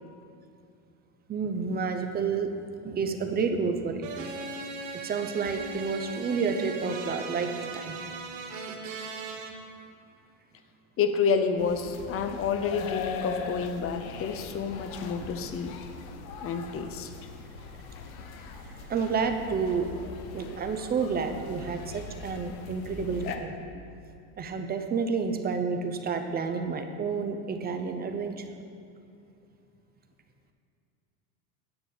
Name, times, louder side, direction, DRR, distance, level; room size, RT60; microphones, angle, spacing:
voice 1, 1.3-2.5 2.8-4.1 4.9-8.0 8.6-8.8 15.4-15.5 16.2-16.3 18.6-19.9 20.3-23.5 24.4-28.4, right 5 dB, 20° right, 6 dB, 0.7 m, -30 dB
sound 1, 4.0-9.5, right 4 dB, 70° right, 1.3 m, -38 dB
voice 2, 11.0-15.8 16.4-17.1, left 5 dB, 30° left, 8 dB, 0.7 m, -29 dB
sound 2, 11.6-23.4, left 6 dB, 75° left, 0.9 m, -41 dB
9.5 x 6.9 x 4.0 m, 2.6 s
supercardioid pair, 110°, 43 cm